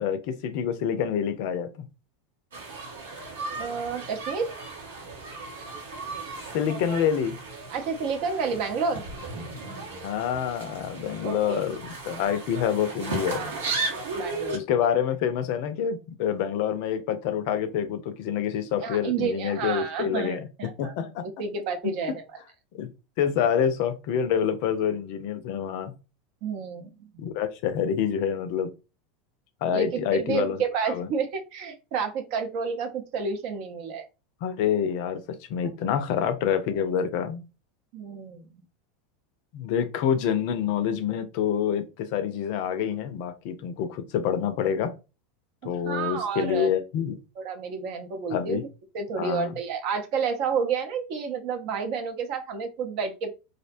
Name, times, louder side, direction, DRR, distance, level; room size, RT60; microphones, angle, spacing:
voice 1, 0.0-1.7 6.5-7.4 10.0-13.5 14.5-20.4 20.8-21.3 22.7-22.9 23.2-25.9 27.2-28.7 29.6-31.1 34.4-37.5 39.5-44.9 45.6-47.2 48.3-48.6 49.2-49.5, left 8 dB, 60° left, 0.4 m, -27 dB
sound 1, 2.5-14.6, right 3 dB, 80° right, 0.8 m, -36 dB
voice 2, 3.6-4.5 7.7-9.0 11.2-11.6 13.3-13.6 14.1-14.9 18.8-21.0 21.4-22.2 23.4-23.5 26.4-26.9 29.7-34.1 37.9-38.6 45.8-46.7 47.4-48.7 48.9-53.3, right 5 dB, 55° right, 0.6 m, -30 dB
2.6 x 2.1 x 2.5 m
hypercardioid pair, 85°, 0 cm